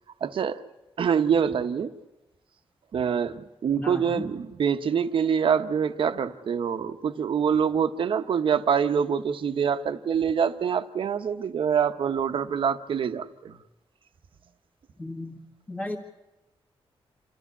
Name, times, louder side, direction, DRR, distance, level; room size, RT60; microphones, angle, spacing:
voice 1, 0.2-0.6 1.0-1.9 2.9-13.6, right 7 dB, 60° right, 9 dB, 0.9 m, -25 dB
voice 2, 3.8-4.2 15.0-15.4 15.7-16.0, left 1 dB, 15° left, -3 dB, 1.8 m, -34 dB
28.0 x 13.5 x 8.4 m, 1.0 s
wide cardioid pair, 160°, 10 cm